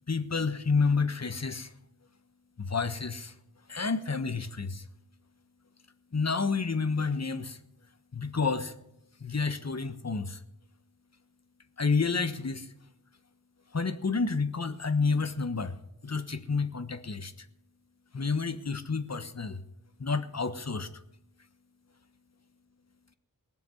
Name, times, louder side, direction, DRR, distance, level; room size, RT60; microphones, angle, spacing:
voice 1, 0.1-1.7 2.6-3.3 3.7-4.8 6.1-7.6 8.1-8.7 9.2-10.4 11.8-12.7 13.7-15.8 16.0-17.3 18.1-19.6 20.0-20.9, left 4 dB, 45° left, 10 dB, 1.3 m, -29 dB
20.0 x 7.1 x 9.7 m, 0.81 s
wide cardioid pair, 70°, 37 cm